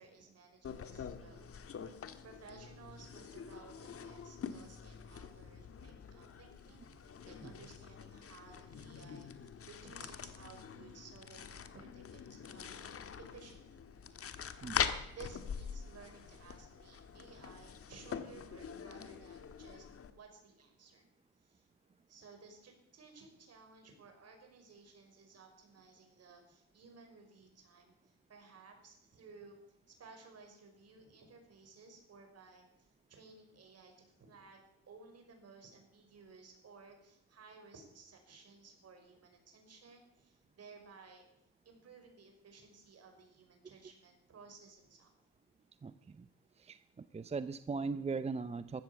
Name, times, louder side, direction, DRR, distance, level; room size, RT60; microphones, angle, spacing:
voice 1, 0.0-1.5 2.2-14.1 15.1-19.9 20.1-21.0 21.4-21.7 22.1-29.6 29.9-41.2 41.6-45.1, right 4 dB, 55° right, 4 dB, 5.6 m, -57 dB
sound 1, 0.6-20.1, left 7 dB, 50° left, 1.6 m, -44 dB
voice 2, 45.8-46.3 46.6-48.8, right 4 dB, 20° right, 14 dB, 0.6 m, -39 dB
15.5 x 13.5 x 7.1 m, 0.79 s
cardioid pair, 90°, 30 cm